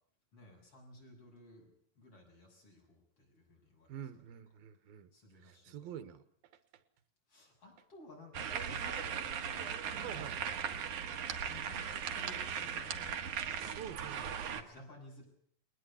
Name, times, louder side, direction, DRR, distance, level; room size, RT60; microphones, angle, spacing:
voice 1, 0.3-4.0 5.1-5.9 7.3-10.7 11.5-13.2 14.0-15.3, left 2 dB, 40° left, 0 dB, 7.8 m, -56 dB
voice 2, 3.9-5.1 5.4-6.2 10.0-10.3 13.8-14.4, right 9 dB, 90° right, 12 dB, 3.1 m, -47 dB
sound 1, 8.3-14.6, right 7 dB, 65° right, 2.8 m, -38 dB
21.0 x 19.5 x 8.5 m, 0.63 s
omnidirectional pair, 4.1 m